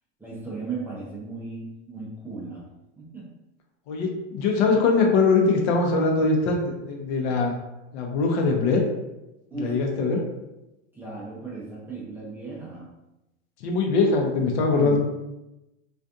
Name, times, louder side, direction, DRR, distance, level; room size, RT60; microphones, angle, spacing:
voice 1, 0.2-2.7 3.0-3.3 4.5-4.9 9.5-9.8 10.9-12.9 14.7-15.0, right 3 dB, 5° right, -8 dB, 0.4 m, -36 dB
voice 2, 3.9-7.5 7.9-8.8 9.5-10.2 13.6-15.0, left 4 dB, 65° left, 1 dB, 0.7 m, -22 dB
2.4 x 2.3 x 2.6 m, 0.95 s
supercardioid pair, 125°, 36 cm